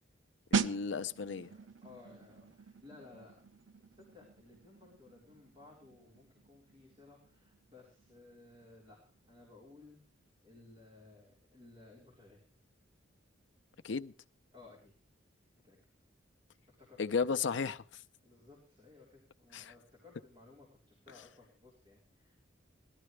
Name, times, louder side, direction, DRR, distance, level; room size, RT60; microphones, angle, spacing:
voice 1, 0.5-1.5 13.8-14.1 17.0-18.0 19.5-19.7, left 5 dB, 70° left, 0.6 m, -34 dB
sound 1, 0.5-11.0 11.3-11.6, right 5 dB, 80° right, 0.6 m, -42 dB
voice 2, 1.5-3.5 4.0-9.0 9.3-10.0 10.4-12.4 14.5-14.9 15.6-15.8 16.7-17.2 18.2-22.4, left 3 dB, 30° right, 4.1 m, -58 dB
18.0 x 12.5 x 3.3 m
head